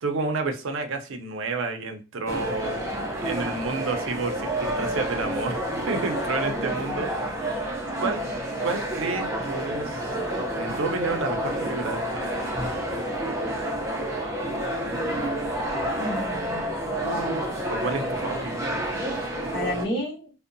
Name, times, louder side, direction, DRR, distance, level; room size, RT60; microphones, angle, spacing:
voice 1, 0.0-7.1 8.0-8.2 8.6-10.2 10.5-12.3 17.7-19.2, right 3 dB, 70° right, 5 dB, 0.5 m, -30 dB
sound 1, 2.3-19.8, right 1 dB, 15° right, 0.5 m, -29 dB
voice 2, 16.0-17.4 19.5-20.3, equal, 50° left, -3 dB, 0.9 m, -31 dB
2.6 x 2.1 x 2.5 m, 0.32 s
head